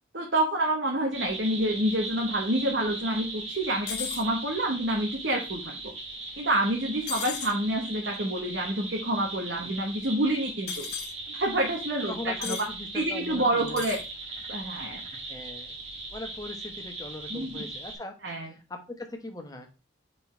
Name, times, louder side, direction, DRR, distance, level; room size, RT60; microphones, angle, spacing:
voice 1, 0.1-5.9 6.4-10.9 11.3-12.7 12.9-14.0 14.5-15.0 17.3-17.5 18.2-18.5, right 1 dB, 60° right, 0 dB, 1.2 m, -28 dB
sound 1, 1.1-17.9, right 2 dB, 30° right, 1.4 m, -39 dB
sound 2, 3.9-4.2 7.1-7.5 10.7-11.1 12.4-12.7 13.7-14.0, left 10 dB, 55° left, 0.9 m, -35 dB
voice 2, 12.1-14.0 15.1-15.8 16.1-18.1 18.4-19.7, left 2 dB, 20° left, 4 dB, 1.0 m, -40 dB
5.3 x 4.2 x 4.5 m, 0.30 s
head